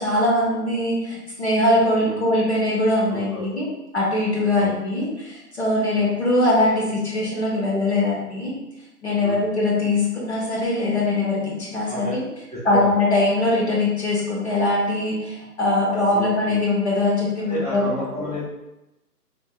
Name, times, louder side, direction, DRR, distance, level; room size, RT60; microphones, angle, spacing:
voice 1, 0.0-3.6 3.9-8.5 9.0-12.2 12.6-17.8, left 2 dB, 45° left, -5 dB, 0.9 m, -22 dB
voice 2, 3.1-3.6 4.5-4.7 5.9-6.1 9.2-9.5 11.9-12.1 12.5-13.0 16.1-16.6 17.5-18.4, equal, 25° right, -11 dB, 0.7 m, -31 dB
3.5 x 2.5 x 2.3 m, 0.94 s
figure-of-eight pair, 155°, 48 cm